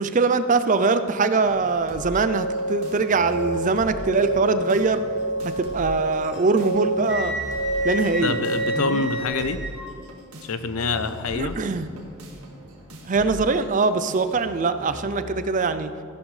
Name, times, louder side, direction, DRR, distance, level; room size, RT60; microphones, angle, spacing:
voice 1, 0.0-5.0 5.4-7.4 7.8-8.4 8.7-9.1 11.3-11.9 13.0-15.9, right 4 dB, 35° right, 11 dB, 0.4 m, -22 dB
sound 1, 1.4-15.4, equal, 85° right, 1.9 m, -41 dB
sound 2, 1.9-9.3, right 1 dB, 55° left, 1.1 m, -29 dB
Wind instrument woodwind instrument, 7.1-9.9, right 1 dB, 5° right, 1.9 m, -32 dB
voice 2, 8.2-9.6 10.4-11.6, left 4 dB, 75° left, 11 dB, 0.7 m, -26 dB
14.5 x 11.5 x 3.3 m, 2.3 s
head